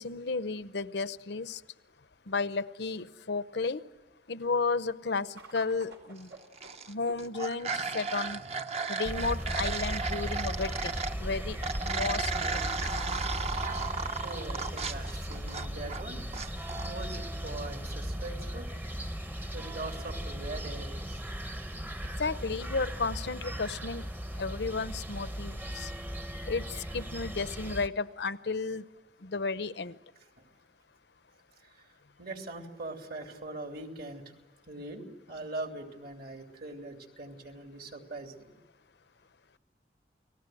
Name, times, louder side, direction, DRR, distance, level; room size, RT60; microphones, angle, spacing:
voice 1, 0.0-1.6 2.3-3.9 4.3-6.3 6.9-8.4 8.9-11.6 11.8-12.6 22.2-24.1 24.3-25.9 26.5-26.7 26.9-28.8 29.2-30.0, left 4 dB, 70° left, 14 dB, 0.8 m, -33 dB
sound 1, 5.4-18.0, equal, 85° right, 4.9 m, -52 dB
sound 2, 6.4-6.9 7.2-11.1 11.6-16.0 16.3-16.9, right 4 dB, 40° right, 0.9 m, -34 dB
sound 3, 9.1-27.9, equal, 10° right, 0.9 m, -37 dB
voice 2, 14.2-18.7 19.5-21.2 31.6-31.9 32.2-34.2 34.7-38.5, right 2 dB, 60° right, 4 dB, 3.2 m, -42 dB
30.0 x 20.0 x 9.2 m, 1.2 s
head